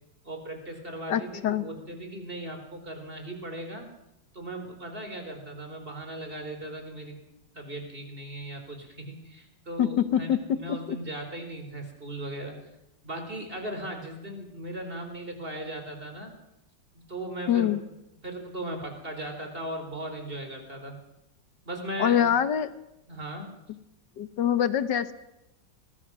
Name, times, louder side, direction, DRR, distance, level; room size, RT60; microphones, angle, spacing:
voice 1, 0.2-3.9 4.3-7.2 7.5-12.6 13.0-16.3 17.1-17.8 18.2-20.9 21.7-22.3 23.1-23.5, right 1 dB, 30° right, 5 dB, 4.3 m, -38 dB
voice 2, 1.1-1.7 9.8-11.0 17.5-17.8 22.0-22.7 24.2-25.1, left 9 dB, 70° left, 13 dB, 1.7 m, -25 dB
24.5 x 20.5 x 6.2 m, 0.89 s
omnidirectional pair, 2.0 m